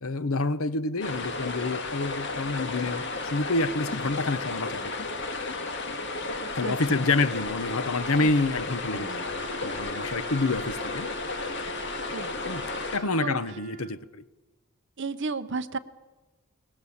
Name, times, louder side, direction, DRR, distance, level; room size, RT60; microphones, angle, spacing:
voice 1, 0.0-4.9 6.5-11.1 12.5-12.7 12.9-14.2, left 3 dB, 70° left, 15 dB, 0.9 m, -28 dB
sound 1, 1.0-13.0, left 3 dB, 55° left, 2.0 m, -33 dB
voice 2, 6.6-7.0 8.2-8.4 8.9-9.2 12.1-12.3 13.2-13.4 15.0-15.8, right 4 dB, 55° right, 8 dB, 0.8 m, -33 dB
Wind instrument woodwind instrument, 8.9-14.1, right 3 dB, 40° right, 1.6 m, -44 dB
22.5 x 19.5 x 7.2 m, 1.2 s
head